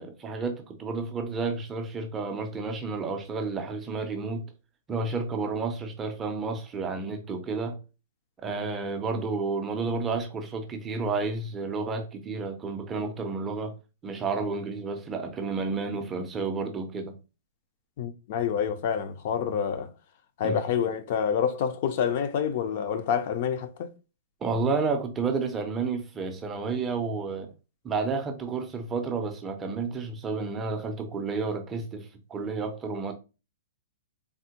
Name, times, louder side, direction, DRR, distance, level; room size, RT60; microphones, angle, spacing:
voice 1, 0.0-4.4 4.9-7.8 8.4-13.7 14.0-17.1 20.4-20.6 24.4-27.5 27.8-33.1, right 4 dB, 15° right, 0.4 m, -31 dB
voice 2, 18.0-19.9 20.4-23.9, left 7 dB, 45° left, 0.4 m, -27 dB
3.4 x 2.1 x 2.8 m
hypercardioid pair, 160°, 0 cm